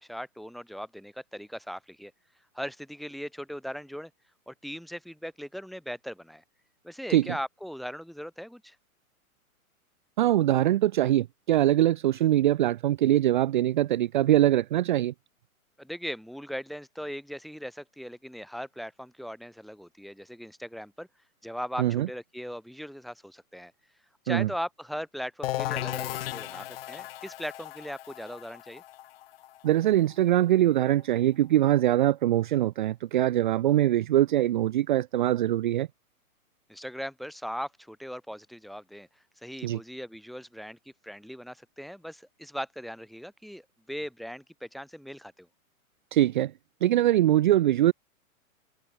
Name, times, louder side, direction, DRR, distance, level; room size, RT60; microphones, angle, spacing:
voice 1, 0.0-2.1 2.5-4.1 4.5-6.4 6.8-8.8 15.8-21.1 21.4-23.7 24.2-28.8 36.7-39.1 39.4-40.8 41.0-45.5, equal, ahead, 4.8 m, -39 dB
voice 2, 10.2-15.1 21.8-22.1 24.3-24.5 29.6-35.9 39.6-39.8 46.1-46.5 46.8-47.9, right 13 dB, 35° right, 0.8 m, -23 dB
sound 1, 25.4-31.0, left 14 dB, 40° left, 3.5 m, -36 dB
hypercardioid pair, 165°, 43 cm